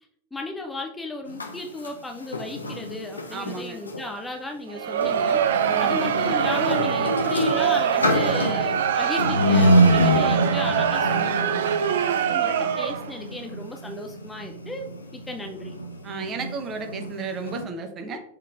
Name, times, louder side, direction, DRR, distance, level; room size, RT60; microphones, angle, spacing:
voice 1, 0.3-5.4 5.6-11.7 12.3-15.7, left 2 dB, 10° left, 3 dB, 0.4 m, -35 dB
sound 1, 1.3-4.1 4.9-17.7, equal, 80° left, 0.5 m, -26 dB
voice 2, 3.3-3.8 5.6-6.0 9.9-10.3 16.0-18.2, right 4 dB, 30° right, 5 dB, 0.7 m, -33 dB
Crowd, 4.7-13.2, right 8 dB, 60° right, 0.3 m, -24 dB
5.7 x 3.2 x 2.4 m, 0.69 s
figure-of-eight pair, 90°, 0 cm